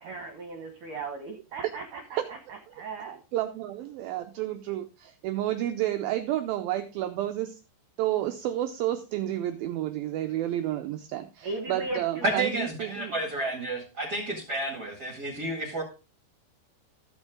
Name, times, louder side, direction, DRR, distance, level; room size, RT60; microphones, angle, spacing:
voice 1, 0.0-3.2 11.4-12.4, right 3 dB, 65° right, 3 dB, 2.2 m, -37 dB
voice 2, 3.3-7.6 8.0-13.1, right 13 dB, 85° right, 7 dB, 2.1 m, -30 dB
voice 3, 12.2-15.8, right 2 dB, 35° right, -1 dB, 1.5 m, -30 dB
14.0 x 6.4 x 3.7 m, 0.31 s
omnidirectional pair, 5.0 m